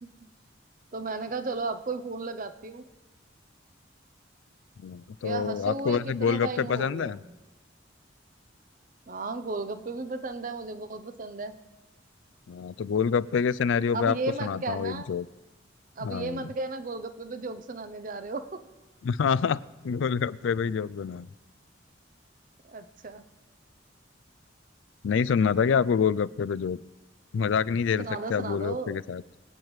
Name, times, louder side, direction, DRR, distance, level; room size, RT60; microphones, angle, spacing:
voice 1, 0.9-2.9 5.2-7.3 9.1-11.6 13.9-15.1 16.0-18.6 22.6-23.2 28.0-29.0, right 3 dB, 45° right, 10 dB, 0.7 m, -34 dB
voice 2, 4.8-7.2 12.5-15.3 16.0-16.5 19.0-19.6 19.8-21.3 25.0-26.8 27.3-29.2, left 6 dB, 80° left, 19 dB, 0.4 m, -27 dB
23.5 x 9.0 x 3.2 m, 1.1 s
head